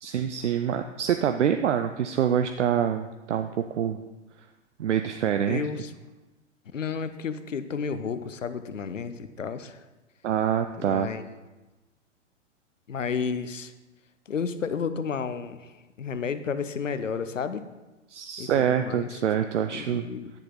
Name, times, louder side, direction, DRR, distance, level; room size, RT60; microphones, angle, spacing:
voice 1, 0.0-4.0 4.8-5.6 10.2-11.1 18.1-20.0, right 9 dB, 70° right, 8 dB, 0.6 m, -26 dB
voice 2, 5.5-5.9 6.7-9.8 10.8-11.3 12.9-13.7 14.3-17.6 18.4-19.2 19.7-20.3, left 6 dB, 85° left, 12 dB, 0.7 m, -32 dB
10.0 x 6.9 x 3.8 m, 1.1 s
figure-of-eight pair, 110°, 37 cm